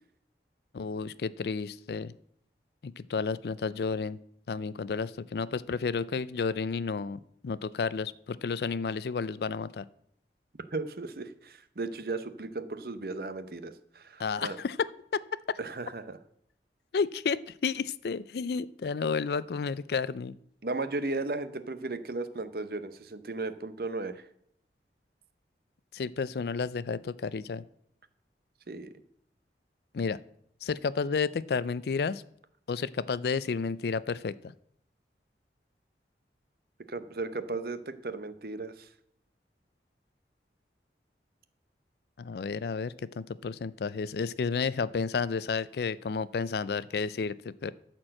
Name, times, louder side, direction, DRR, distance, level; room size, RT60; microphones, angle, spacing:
voice 1, 0.7-2.1 2.8-4.2 4.5-9.8 14.2-15.2 16.9-20.4 25.9-27.6 29.9-30.2 30.6-32.2 32.7-34.5 42.2-47.7, left 5 dB, 65° left, 18 dB, 0.4 m, -31 dB
voice 2, 10.7-14.6 15.6-16.2 20.6-24.2 28.7-28.9 36.9-38.9, right 3 dB, 55° right, 12 dB, 0.7 m, -35 dB
13.0 x 4.5 x 7.6 m, 0.70 s
head